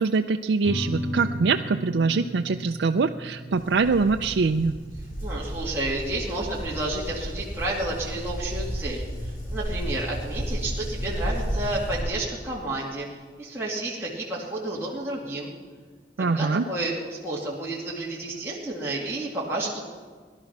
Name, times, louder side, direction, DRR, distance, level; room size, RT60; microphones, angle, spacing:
voice 1, 0.0-4.7 16.2-16.6, right 4 dB, 90° right, 5 dB, 0.5 m, -23 dB
sound 1, 0.6-11.6, equal, 70° left, 2.4 m, -38 dB
sound 2, 3.5-12.0, equal, 50° left, 3.3 m, -33 dB
voice 2, 5.2-13.1 13.4-15.5 16.2-19.8, right 2 dB, 15° right, -6 dB, 2.3 m, -31 dB
18.0 x 11.5 x 6.0 m, 1.5 s
head